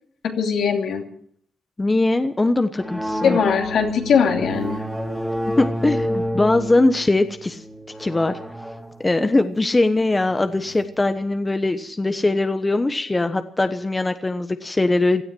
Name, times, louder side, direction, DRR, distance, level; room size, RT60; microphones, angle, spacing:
voice 1, 0.2-1.0 3.2-4.8, left 6 dB, 75° left, 2 dB, 2.9 m, -20 dB
voice 2, 1.8-3.4 5.6-7.6 8.0-8.4 9.0-15.2, left 2 dB, 20° left, 8 dB, 1.1 m, -21 dB
sound 1, 2.8-10.9, equal, 5° right, 2.9 m, -30 dB
17.0 x 12.5 x 6.2 m, 0.63 s
cardioid pair, 75°, 0 cm